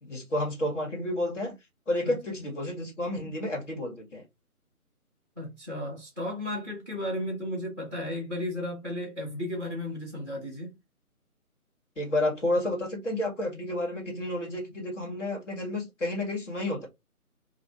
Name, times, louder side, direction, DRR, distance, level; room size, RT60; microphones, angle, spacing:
voice 1, 0.0-1.5 1.9-4.2 12.0-16.9, left 1 dB, 55° left, 1.7 m, -30 dB
voice 2, 5.4-10.7, left 1 dB, 15° left, 0.9 m, -34 dB
3.2 x 2.4 x 2.9 m
figure-of-eight pair, 150°, 44 cm